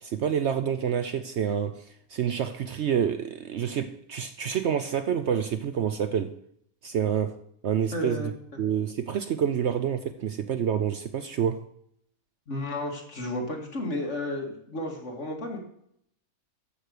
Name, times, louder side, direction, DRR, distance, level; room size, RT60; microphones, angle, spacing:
voice 1, 0.0-6.3 6.8-7.4 7.6-8.3 8.6-11.6, right 8 dB, 60° right, 0.8 m, -28 dB
voice 2, 7.9-8.6 12.5-15.6, left 1 dB, 55° left, 2.3 m, -33 dB
13.5 x 5.1 x 6.5 m
omnidirectional pair, 1.5 m